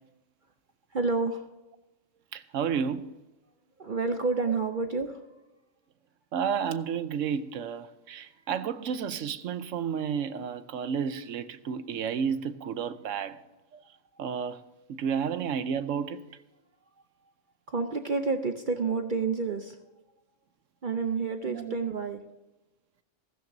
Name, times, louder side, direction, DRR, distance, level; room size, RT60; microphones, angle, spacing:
voice 1, 0.9-1.4 3.8-5.3 17.7-19.8 20.8-22.2, right 4 dB, 45° right, 0.8 m, -29 dB
voice 2, 2.3-3.2 6.3-13.4 13.7-13.8 14.2-14.6 14.9-16.2 21.5-21.8, right 7 dB, 80° right, 1.1 m, -31 dB
15.5 x 14.5 x 2.7 m
omnidirectional pair, 1.3 m